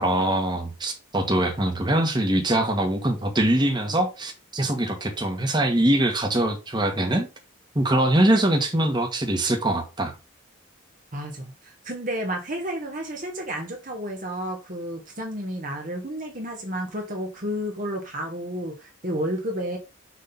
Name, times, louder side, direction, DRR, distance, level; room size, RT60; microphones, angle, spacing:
voice 1, 0.0-7.3 7.7-10.1, right 1 dB, 20° right, 1.6 m, -23 dB
voice 2, 11.1-19.8, equal, 40° right, 1.4 m, -31 dB
6.5 x 3.7 x 5.4 m
head